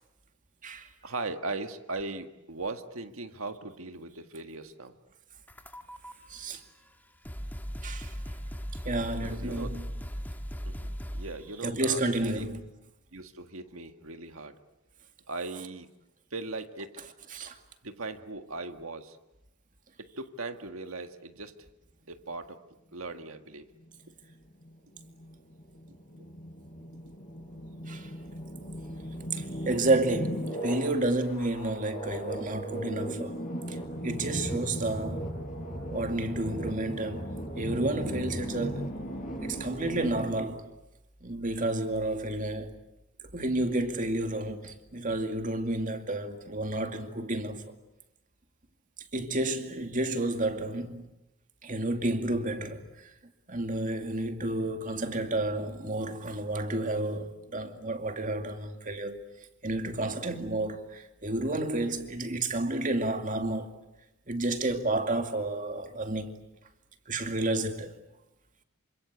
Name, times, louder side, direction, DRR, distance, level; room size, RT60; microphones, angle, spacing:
voice 1, 1.0-5.0 9.2-9.8 10.7-12.5 13.1-14.6 15.3-15.9 16.3-17.0 17.8-19.2 20.0-21.6 22.1-22.6 22.9-23.7 25.9-26.3 27.3-27.5, right 3 dB, 75° right, 1.8 m, -39 dB
sound 1, 5.5-6.1 6.9-7.0 7.2-11.5, equal, 10° left, 1.5 m, -38 dB
voice 2, 7.8-8.1 8.8-9.8 11.6-12.6 17.3-17.5 27.9-28.1 29.7-33.4 33.7-33.8 34.0-35.3 35.9-38.9 39.4-40.7 41.2-42.7 43.3-47.6 49.1-51.0 51.6-52.8 53.5-59.2 59.6-63.7 64.3-66.3 67.1-67.9, right 2 dB, 40° right, 2.3 m, -31 dB
sound 2, 23.8-40.2, equal, 40° left, 6.4 m, -37 dB
27.5 x 26.0 x 8.2 m
head